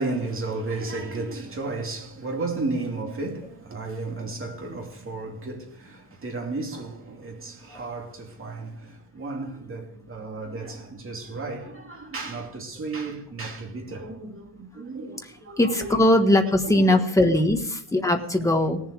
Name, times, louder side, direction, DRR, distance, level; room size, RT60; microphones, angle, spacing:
voice 1, 0.0-16.0 16.6-17.1, right 3 dB, 30° right, 2.7 m, -33 dB
voice 2, 15.6-18.8, left 1 dB, 10° left, 1.4 m, -20 dB
19.0 x 7.2 x 4.8 m
cardioid pair, 150°, 40 cm